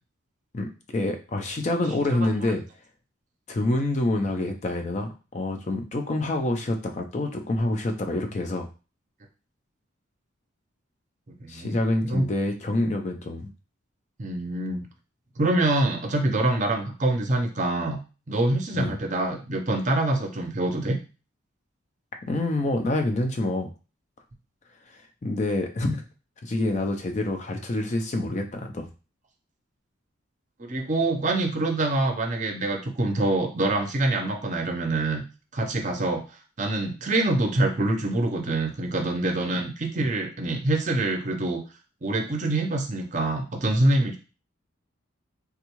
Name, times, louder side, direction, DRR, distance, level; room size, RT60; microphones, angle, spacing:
voice 1, 0.5-2.6 3.5-8.7 11.5-13.5 18.7-19.0 22.2-23.7 25.2-26.0 26.4-28.9, left 2 dB, 35° left, 5 dB, 0.4 m, -27 dB
voice 2, 11.4-11.8 12.0-12.3 14.2-14.8 15.4-18.0 18.3-21.0 30.6-35.2 35.5-36.2 36.6-41.6 42.0-44.2, right 2 dB, 35° right, 3 dB, 0.5 m, -25 dB
3.4 x 2.3 x 3.0 m, 0.33 s
head